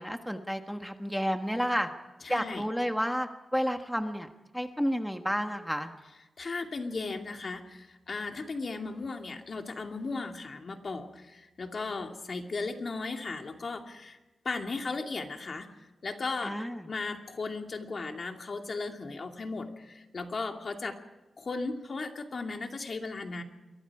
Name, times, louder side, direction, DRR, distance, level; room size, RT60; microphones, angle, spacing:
voice 1, 0.0-1.9 2.3-4.3 4.5-5.9 16.4-16.9, equal, ahead, 6 dB, 1.4 m, -31 dB
voice 2, 2.2-2.7 6.4-14.2 14.4-15.7 16.0-16.5 16.9-21.0 21.4-23.4, left 3 dB, 50° left, 4 dB, 2.5 m, -36 dB
29.5 x 23.0 x 4.9 m, 1.1 s
wide cardioid pair, 100°, 0 cm